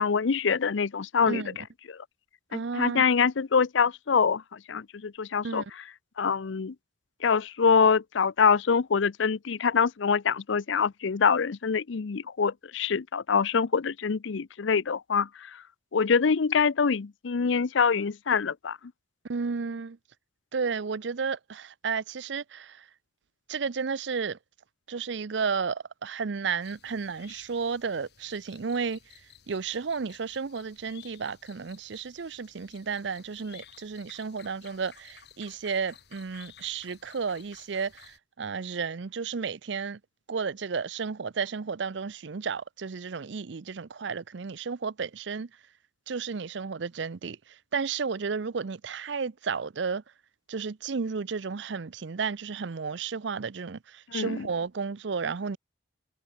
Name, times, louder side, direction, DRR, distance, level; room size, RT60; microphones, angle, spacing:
voice 1, 0.0-2.0 2.5-5.6 6.2-6.7 7.2-15.6 15.9-18.8 54.1-54.5, left 6 dB, 75° left, 0.6 m, -25 dB
voice 2, 1.3-1.6 2.5-3.0 5.4-5.6 19.3-20.0 20.5-22.8 23.5-24.4 24.9-29.0 29.5-40.0 40.3-45.5 46.1-47.4 47.7-50.0 50.5-55.6, right 5 dB, 70° right, 0.6 m, -32 dB
sound 1, 26.6-38.2, left 9 dB, 55° left, 7.9 m, -55 dB
head